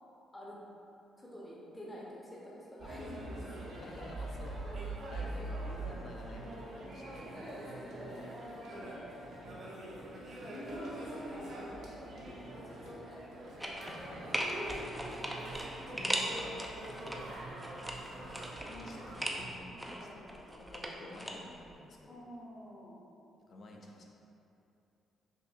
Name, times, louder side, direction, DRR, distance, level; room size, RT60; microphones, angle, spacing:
voice 1, 1.2-4.8 5.1-5.3 7.4-8.4 9.8-13.4 14.3-15.0 16.9-17.2 19.7-20.5 22.1-23.0, equal, 20° left, -5 dB, 0.8 m, -48 dB
sound 1, 2.8-19.5, right 1 dB, 75° right, 0.8 m, -44 dB
voice 2, 3.7-4.6 5.1-7.5 8.7-9.0 13.8-14.4 14.7-14.8 15.1-15.3 15.9-16.6 17.0-17.4 17.8-18.4 18.7-20.3 20.5-22.2 23.5-24.0, left 2 dB, 55° left, 0 dB, 0.5 m, -50 dB
sound 2, 13.6-14.0 14.3-17.2 17.6-19.4 19.8-21.3 21.6-21.7, equal, 5° right, 0.4 m, -38 dB
5.3 x 2.6 x 2.4 m, 2.8 s
cardioid pair, 90°, 0 cm